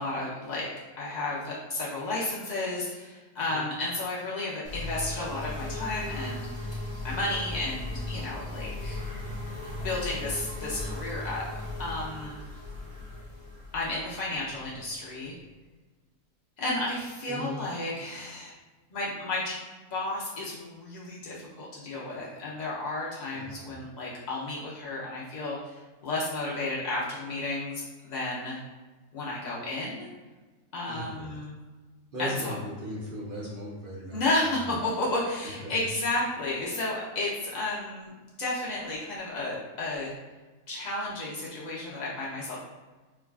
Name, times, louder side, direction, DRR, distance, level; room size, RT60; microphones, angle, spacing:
voice 1, 0.0-6.7 7.0-9.0 9.8-11.4 11.8-12.4 13.7-15.4 16.6-18.5 18.9-19.6 19.9-28.6 29.1-30.1 30.7-31.6 32.2-32.5 34.1-38.1 38.4-40.1 40.7-42.6, left 2 dB, 75° left, -6 dB, 0.4 m, -32 dB
sound 1, 4.6-15.3, left 2 dB, 5° left, 0.7 m, -37 dB
voice 2, 17.3-17.6 23.3-23.8 30.9-31.4 32.1-34.5 35.6-35.8, equal, 55° right, -6 dB, 0.6 m, -38 dB
4.5 x 2.3 x 2.3 m, 1.3 s
omnidirectional pair, 1.6 m